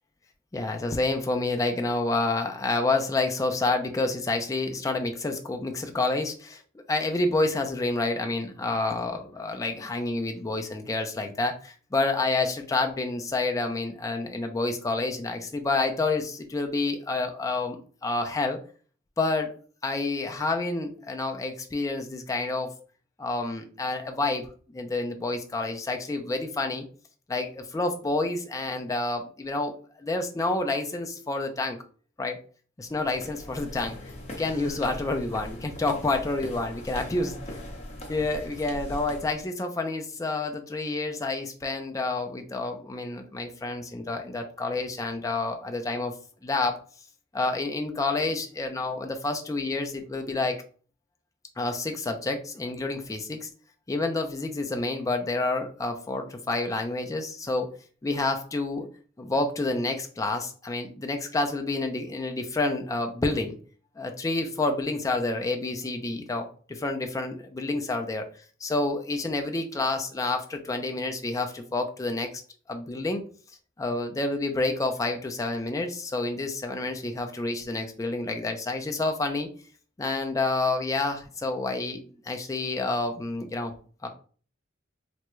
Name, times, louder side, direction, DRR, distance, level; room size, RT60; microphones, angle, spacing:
voice 1, 0.5-6.6 6.9-18.6 19.2-19.5 19.8-22.7 23.2-26.9 27.3-31.8 32.2-32.4 32.8-34.0 34.4-37.4 38.1-46.1 46.4-46.8 47.3-50.6 51.6-53.5 53.9-57.7 58.0-58.9 59.2-63.6 64.0-68.3 68.6-72.3 72.7-73.2 73.8-79.5 80.0-83.7 84.0-84.1, left 2 dB, 15° left, 4 dB, 0.4 m, -29 dB
sound 1, 32.9-39.4, left 1 dB, 30° left, 0.7 m, -40 dB
3.4 x 2.1 x 3.0 m, 0.42 s
head